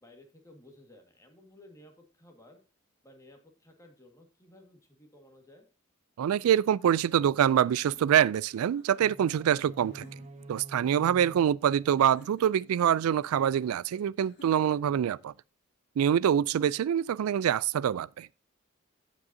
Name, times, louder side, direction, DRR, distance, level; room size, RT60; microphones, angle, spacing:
voice 1, 0.0-2.6 3.0-5.7 11.1-11.5, left 1 dB, 15° left, 1.8 m, -56 dB
voice 2, 6.2-10.0 10.5-15.3 16.0-18.3, right 9 dB, 85° right, 0.3 m, -25 dB
sound 1, 7.8-9.0 9.9-10.5 12.0-12.7 14.2-15.0, equal, 55° left, 2.9 m, -55 dB
sound 2, 9.0-13.0, right 2 dB, 30° right, 0.7 m, -48 dB
15.5 x 5.3 x 2.7 m
head